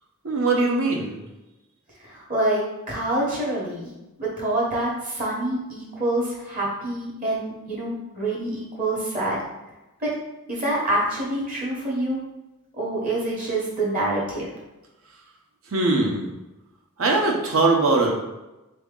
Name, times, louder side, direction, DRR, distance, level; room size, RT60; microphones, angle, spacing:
voice 1, 0.2-1.2 15.7-16.3 17.0-18.1, right 3 dB, 65° right, 0 dB, 0.8 m, -21 dB
voice 2, 2.0-3.9 4.2-9.4 10.0-10.1 10.5-12.2 12.7-14.5, right 1 dB, 35° right, -4 dB, 1.0 m, -26 dB
3.9 x 2.9 x 3.6 m, 0.99 s
head